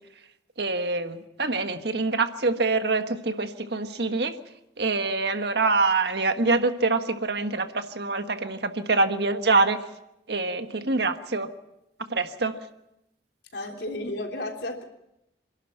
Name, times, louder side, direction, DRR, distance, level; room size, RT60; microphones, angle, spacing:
voice 1, 0.6-4.4 4.8-9.9 10.3-11.5 12.1-12.6, right 3 dB, 70° right, 8 dB, 1.5 m, -25 dB
voice 2, 13.5-14.8, left 1 dB, 75° left, 2 dB, 3.5 m, -33 dB
27.0 x 11.5 x 8.8 m, 0.86 s
head